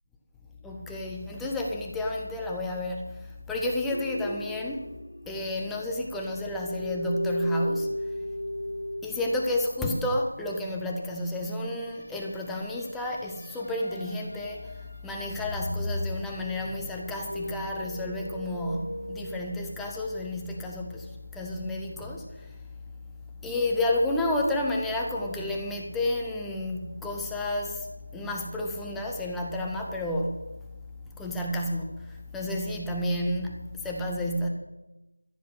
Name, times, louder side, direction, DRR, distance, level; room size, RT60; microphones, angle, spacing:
voice 1, 0.6-4.9 5.3-8.2 9.0-22.6 23.4-30.4 31.2-34.5, left 1 dB, ahead, -1 dB, 0.5 m, -31 dB
sound 1, 3.9-5.8 6.1-10.0 11.6-14.8 15.1-19.4, left 1 dB, 85° left, 2.0 m, -36 dB
14.0 x 7.3 x 7.7 m, 1.0 s
figure-of-eight pair, 170°, 0 cm